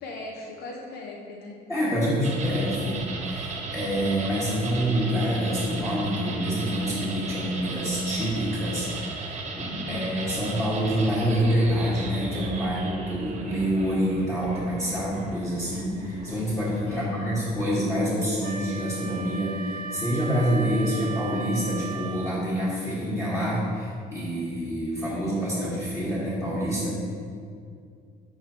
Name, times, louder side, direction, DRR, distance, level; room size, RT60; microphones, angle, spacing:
voice 1, 0.0-1.6 9.8-10.2 16.9-17.3, left 2 dB, 70° left, 0 dB, 0.6 m, -39 dB
voice 2, 1.7-27.0, equal, 15° left, -9 dB, 1.5 m, -27 dB
sound 1, 2.2-17.8, right 3 dB, 40° right, 0.9 m, -36 dB
Wind instrument woodwind instrument, 18.4-22.4, right 4 dB, 60° right, 0.5 m, -37 dB
7.6 x 4.7 x 2.9 m, 2.3 s
cardioid pair, 110°, 17 cm